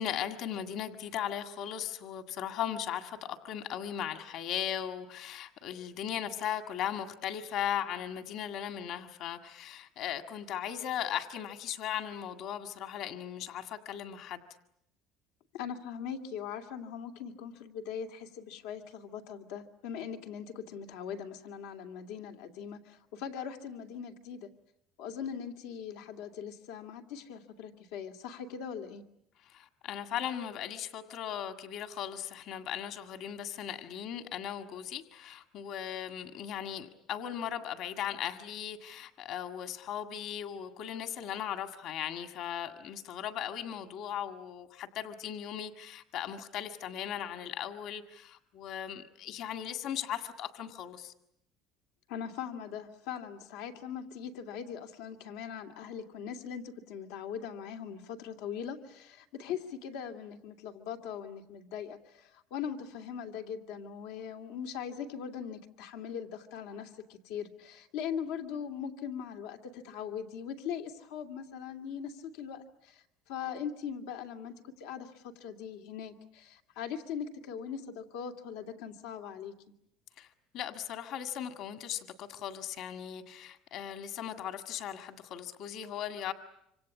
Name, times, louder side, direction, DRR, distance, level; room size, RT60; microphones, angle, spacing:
voice 1, 0.0-14.4 29.4-51.1 80.2-80.3 80.5-86.3, left 10 dB, 50° left, 1.9 m, -38 dB
voice 2, 15.5-24.5 25.0-29.0 52.1-79.5, left 7 dB, 90° left, 2.5 m, -40 dB
26.5 x 26.5 x 8.5 m
cardioid pair, 165°, 0 cm